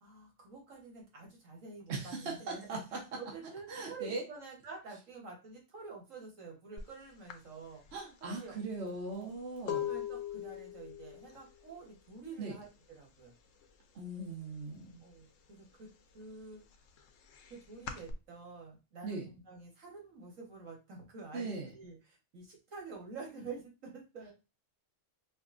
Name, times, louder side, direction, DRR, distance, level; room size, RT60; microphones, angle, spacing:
voice 1, 0.0-2.8 3.2-7.8 8.2-8.6 9.1-9.3 9.6-13.3 15.0-15.9 16.1-16.6 17.5-19.2 19.5-24.3, right 4 dB, 80° right, -1 dB, 1.7 m, -48 dB
voice 2, 1.9-3.2 3.7-4.2 7.9-9.8 12.4-12.6 13.9-15.0 19.0-19.3 21.3-21.7, right 3 dB, 60° right, -1 dB, 1.2 m, -39 dB
sound 1, 6.8-6.9 7.3-13.0 13.2-13.7 14.0-15.2 15.6-18.1, left 10 dB, 80° left, 1.0 m, -42 dB
5.1 x 2.3 x 2.5 m, 0.29 s
omnidirectional pair, 1.3 m